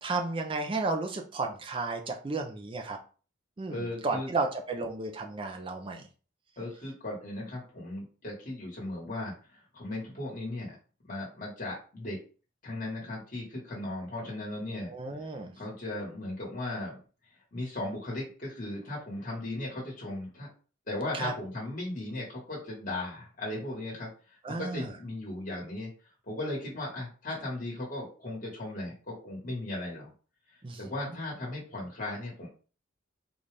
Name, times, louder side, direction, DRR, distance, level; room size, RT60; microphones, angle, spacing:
voice 1, 0.0-3.0 3.6-6.1 14.9-15.5 21.1-21.3 24.4-24.9 30.6-30.8, right 3 dB, 25° right, 3 dB, 0.4 m, -33 dB
voice 2, 3.7-4.3 6.6-10.7 11.0-12.2 12.6-14.9 15.2-15.3 15.5-17.0 17.5-20.5 20.9-24.1 24.5-25.9 26.3-30.1 30.8-32.5, left 1 dB, 40° left, -4 dB, 1.3 m, -37 dB
3.9 x 2.3 x 3.2 m, 0.37 s
head